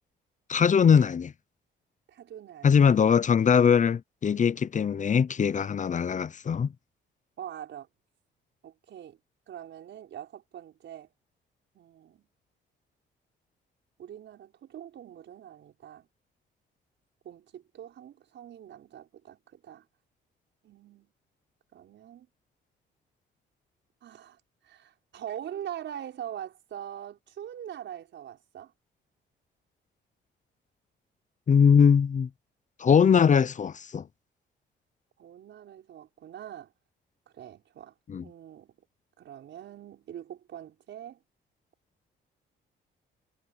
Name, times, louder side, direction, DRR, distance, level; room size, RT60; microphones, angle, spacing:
voice 1, 0.5-1.3 2.6-6.7 31.5-32.3 32.8-34.0 38.1-38.2, left 7 dB, 40° left, 0.8 m, -21 dB
voice 2, 2.1-3.0 3.4-3.5 7.4-7.9 8.6-9.2 9.5-11.1 11.7-12.3 14.0-16.1 17.2-19.9 20.6-21.1 21.7-22.3 24.0-24.4 24.6-28.7 35.2-36.7 37.3-37.9 38.2-38.8 39.2-41.2, right 10 dB, 70° right, 5.7 m, -43 dB
cardioid pair, 90°, 20 cm